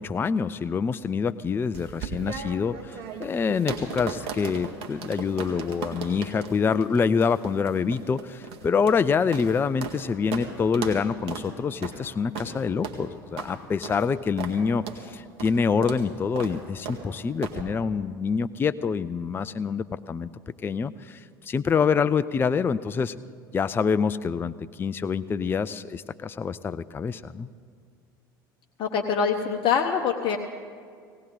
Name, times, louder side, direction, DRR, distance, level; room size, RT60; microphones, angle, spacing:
voice 1, 0.0-20.3 20.6-23.1 23.5-27.5, left 5 dB, 20° left, 14 dB, 0.4 m, -26 dB
sound 1, 1.7-10.0 10.3-10.5 10.7-11.0 11.3-11.5 11.8-12.0 12.3-12.5 12.8-13.0 13.4-13.5 13.8-14.0 14.4-14.6 14.9-15.0 15.4-15.6 15.8-16.0 16.4-16.6 16.9-17.0 17.4-17.6, right 5 dB, 55° right, 1.9 m, -36 dB
voice 2, 28.8-30.4, left 6 dB, 45° left, 4 dB, 0.9 m, -24 dB
18.0 x 18.0 x 3.9 m, 2.1 s
figure-of-eight pair, 70°, 12 cm